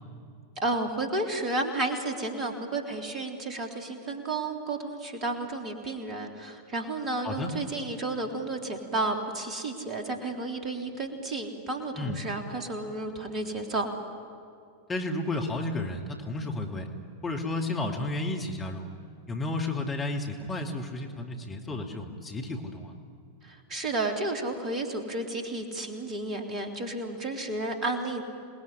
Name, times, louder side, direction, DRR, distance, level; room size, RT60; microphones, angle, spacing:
voice 1, 0.6-13.9 23.4-28.2, right 2 dB, 30° right, 4 dB, 3.4 m, -32 dB
voice 2, 14.9-16.9 17.2-18.9 19.3-22.9, left 2 dB, 20° left, 1 dB, 2.6 m, -32 dB
27.5 x 20.0 x 9.9 m, 2.4 s
figure-of-eight pair, 90°, 0 cm